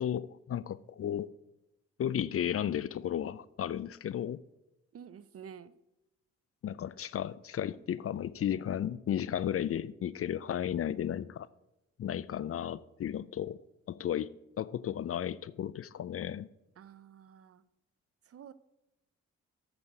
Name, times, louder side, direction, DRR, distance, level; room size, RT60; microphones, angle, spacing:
voice 1, 0.0-1.3 2.0-4.4 6.6-11.5 12.0-13.6 13.9-14.3 14.6-16.5, left 10 dB, 45° left, 0.4 m, -34 dB
voice 2, 4.9-5.7 16.8-17.6 18.3-18.5, right 8 dB, 45° right, 0.6 m, -50 dB
8.7 x 6.1 x 4.9 m
supercardioid pair, 45°, 33 cm